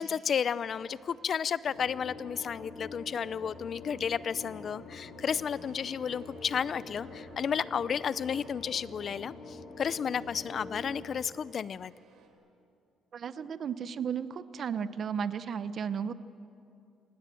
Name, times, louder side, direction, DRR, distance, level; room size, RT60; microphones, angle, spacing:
voice 1, 0.0-11.9, left 7 dB, 40° left, 18 dB, 0.5 m, -32 dB
sound 1, 0.6-3.1 3.6-10.1 11.2-12.3, right 5 dB, 80° right, 3.4 m, -63 dB
sound 2, 1.6-11.0, left 3 dB, 55° left, 4.2 m, -46 dB
voice 2, 13.1-16.1, right 7 dB, 40° right, 14 dB, 0.7 m, -34 dB
27.5 x 18.5 x 7.7 m, 2.6 s
cardioid pair, 160°, 0 cm